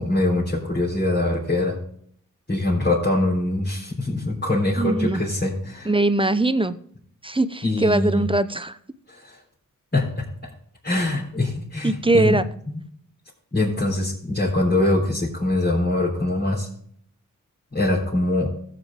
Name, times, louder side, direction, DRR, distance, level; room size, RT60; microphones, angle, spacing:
voice 1, 0.0-1.7 2.5-5.9 7.6-8.2 9.1-9.4 9.9-10.2 10.8-12.4 13.5-16.7 17.7-18.5, left 2 dB, 30° left, -6 dB, 3.8 m, -23 dB
voice 2, 4.8-5.2 5.9-6.8 7.2-8.8 11.8-12.4, right 2 dB, 15° right, 13 dB, 0.7 m, -21 dB
14.0 x 7.6 x 3.7 m, 0.63 s
cardioid pair, 55°, 33 cm